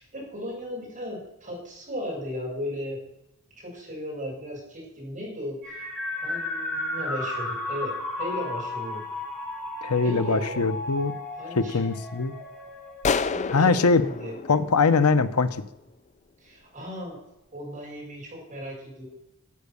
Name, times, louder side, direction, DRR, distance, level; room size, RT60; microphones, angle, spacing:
voice 1, 0.0-3.0 3.5-5.8 6.1-9.0 10.0-10.7 11.3-11.8 13.2-14.4 16.4-17.2 17.5-19.0, equal, 35° right, -3 dB, 6.2 m, -36 dB
sound 1, 5.6-13.2, left 2 dB, 10° left, 5.1 m, -34 dB
voice 2, 9.8-11.1 11.6-12.3 13.5-14.0 14.5-15.5, left 4 dB, 90° left, 12 dB, 0.8 m, -22 dB
sound 2, 13.0-15.6, left 5 dB, 35° left, 0.4 m, -30 dB
13.0 x 8.2 x 6.9 m, 0.86 s
head